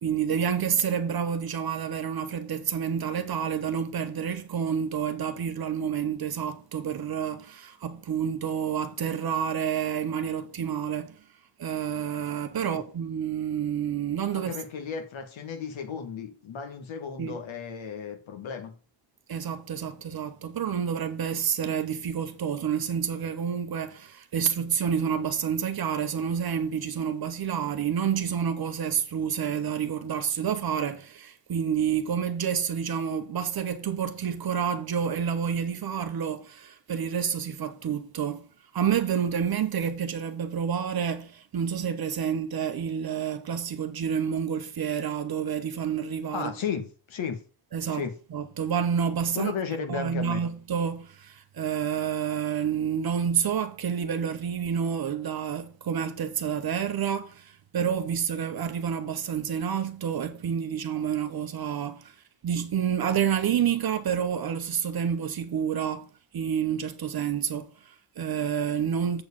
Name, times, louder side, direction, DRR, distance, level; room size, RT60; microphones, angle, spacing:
voice 1, 0.0-11.1 11.6-14.6 17.2-17.4 19.3-38.5 38.7-46.5 47.7-48.0 48.3-49.5 49.9-62.2 62.4-66.1 66.3-69.2, right 8 dB, 45° right, 0.9 m, -29 dB
voice 2, 14.3-18.8 46.3-47.4 47.9-48.1 49.3-50.4, left 6 dB, 65° left, 1.8 m, -34 dB
7.7 x 4.6 x 7.0 m
wide cardioid pair, 160°, 49 cm